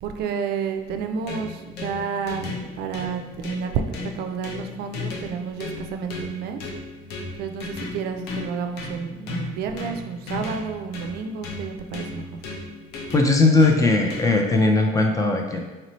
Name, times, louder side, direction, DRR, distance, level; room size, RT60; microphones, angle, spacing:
voice 1, 0.0-6.6 7.4-12.4, right 6 dB, 70° right, 6 dB, 0.4 m, -30 dB
sound 1, 0.9-14.6, left 3 dB, 85° left, 0.8 m, -36 dB
voice 2, 13.1-15.6, left 2 dB, 20° left, 2 dB, 0.5 m, -18 dB
4.3 x 2.7 x 3.1 m, 1.2 s
cardioid pair, 110°, 17 cm